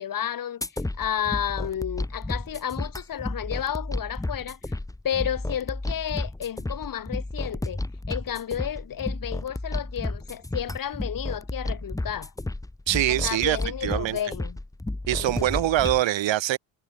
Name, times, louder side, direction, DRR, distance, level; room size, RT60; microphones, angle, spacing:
voice 1, 0.0-4.8 5.0-7.8 8.1-12.3 13.1-14.6 15.2-15.5, left 9 dB, 45° left, 1.8 m, -32 dB
sound 1, 0.6-16.0, left 2 dB, 5° left, 1.5 m, -32 dB
voice 2, 12.9-13.6 13.8-14.2 15.1-16.6, right 14 dB, 70° right, 1.8 m, -23 dB
cardioid pair, 160°, 47 cm